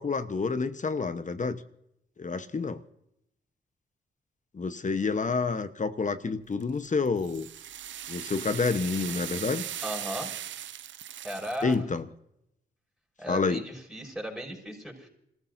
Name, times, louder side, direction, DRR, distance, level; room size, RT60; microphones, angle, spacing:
voice 1, 0.0-1.6 2.2-2.8 4.5-7.5 8.1-9.6 11.6-12.1 13.3-13.6, left 4 dB, 40° left, 11 dB, 1.0 m, -28 dB
sound 1, 6.6-11.8, right 11 dB, 65° right, 0.5 m, -39 dB
voice 2, 9.8-10.3 11.2-11.8 13.2-15.1, equal, ahead, 0 dB, 6.5 m, -36 dB
27.5 x 14.5 x 2.7 m, 0.79 s
supercardioid pair, 50°, 20 cm